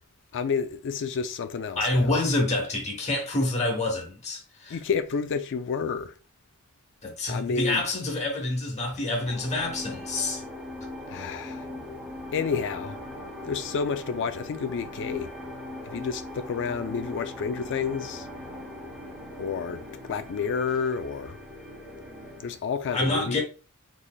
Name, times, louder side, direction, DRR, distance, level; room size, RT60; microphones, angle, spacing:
voice 1, 0.3-2.2 4.7-6.2 7.3-7.8 11.1-11.7 12.3-13.0 13.4-15.3 15.8-18.3 19.4-21.4 22.4-23.4, left 5 dB, 55° left, 0.4 m, -30 dB
voice 2, 1.7-4.8 7.0-10.4 22.9-23.4, left 2 dB, 30° left, 1.0 m, -27 dB
sound 1, 9.3-22.6, left 1 dB, ahead, 0.7 m, -40 dB
4.0 x 3.3 x 2.2 m
head